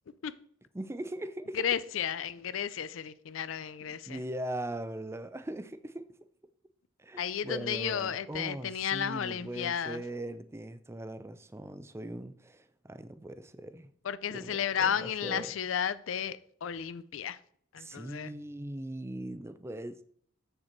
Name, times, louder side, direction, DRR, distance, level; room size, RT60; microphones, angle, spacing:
voice 1, 0.7-1.7 3.9-6.1 7.0-13.9 14.3-15.6 17.8-20.0, right 1 dB, 15° right, 0.5 m, -40 dB
voice 2, 1.5-4.2 7.2-10.0 14.0-17.4 17.7-18.3, left 8 dB, 85° left, 0.5 m, -33 dB
7.6 x 6.6 x 4.4 m
head